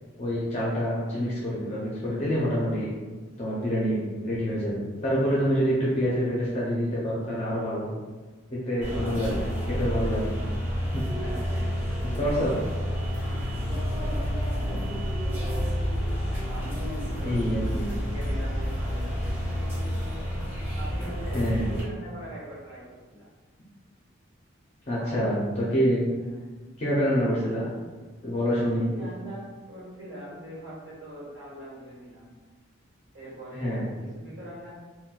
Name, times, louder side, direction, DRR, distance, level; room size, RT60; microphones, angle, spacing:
voice 1, 0.2-2.9 3.4-4.0 4.2-7.9 8.5-10.4 10.9-11.0 12.2-12.5 14.6-14.9 17.1-17.9 21.3-21.7 24.9-26.0 26.8-27.7 28.2-28.9 33.6-33.9, equal, 35° left, -6 dB, 0.5 m, -27 dB
sound 1, 8.8-21.8, equal, 10° right, 1.1 m, -29 dB
voice 2, 8.9-9.2 11.1-14.5 16.4-20.1 20.7-23.3 25.0-25.4 26.2-26.5 28.5-32.3 33.1-34.7, right 1 dB, 60° right, -8 dB, 1.3 m, -43 dB
3.9 x 2.2 x 2.3 m, 1.4 s
head